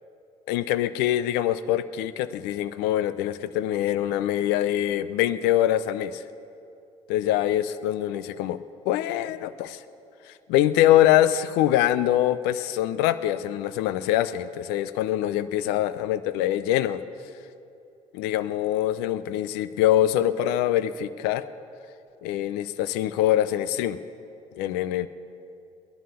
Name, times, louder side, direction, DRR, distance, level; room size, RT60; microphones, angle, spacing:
voice 1, 0.5-6.2 7.1-8.6 8.9-9.8 10.3-17.0 18.1-21.4 22.2-24.0 24.6-25.1, left 12 dB, 75° left, 14 dB, 0.5 m, -24 dB
19.0 x 11.0 x 6.8 m, 2.7 s
hypercardioid pair, 50°, 17 cm